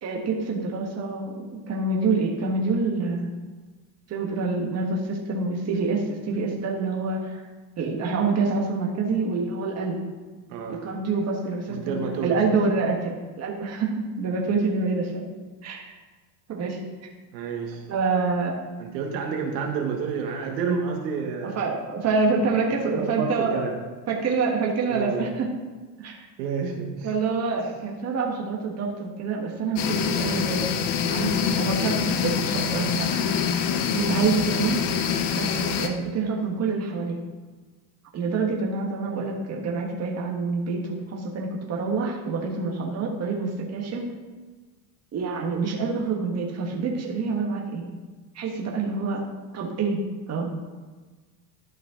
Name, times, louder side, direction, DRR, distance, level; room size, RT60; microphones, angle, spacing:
voice 1, 0.0-3.3 4.1-7.5 7.8-10.0 10.7-15.3 15.6-15.9 16.5-16.8 17.9-18.5 21.4-23.6 24.1-25.5 26.0-26.2 27.0-30.7 31.1-33.1 33.9-34.8 35.3-37.2 38.1-44.1 45.1-47.9 48.3-49.2 49.5-50.0 50.3-50.5, right 4 dB, 30° right, -1 dB, 1.6 m, -26 dB
voice 2, 10.5-10.8 11.7-12.4 17.3-17.8 18.8-21.6 22.3-22.4 22.9-23.8 24.9-25.3 26.4-27.1 27.6-27.7, right 5 dB, 85° right, 2 dB, 1.5 m, -29 dB
sound 1, 29.8-35.9, left 7 dB, 60° left, 1.0 m, -25 dB
11.5 x 5.5 x 3.8 m, 1.3 s
supercardioid pair, 125°, 48 cm